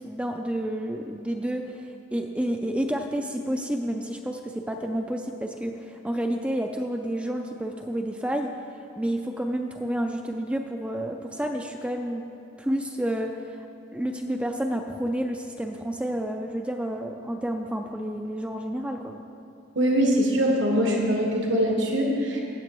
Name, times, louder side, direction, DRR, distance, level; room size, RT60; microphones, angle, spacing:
voice 1, 0.0-8.5 9.0-12.3 12.6-13.6 13.9-19.2, right 1 dB, 5° right, 3 dB, 0.3 m, -30 dB
voice 2, 19.7-22.4, equal, 75° right, -1 dB, 1.2 m, -22 dB
15.5 x 7.3 x 3.0 m, 2.9 s
head